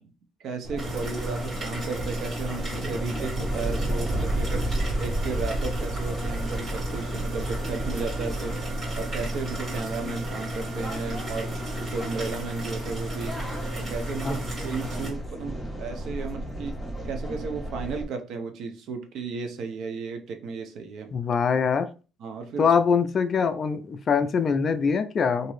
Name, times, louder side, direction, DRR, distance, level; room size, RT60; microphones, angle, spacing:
voice 1, 0.4-4.7 5.0-8.6 8.9-13.3 13.8-21.1 22.2-22.7, right 4 dB, 60° right, 5 dB, 0.7 m, -34 dB
sound 1, 0.6-18.0, right 1 dB, 5° left, 0.7 m, -32 dB
sound 2, 0.8-15.1, right 1 dB, 35° right, 1.7 m, -34 dB
voice 2, 21.1-21.9 22.6-25.5, left 6 dB, 35° left, 10 dB, 0.3 m, -23 dB
2.9 x 2.6 x 3.1 m, 0.34 s
cardioid pair, 140°, 0 cm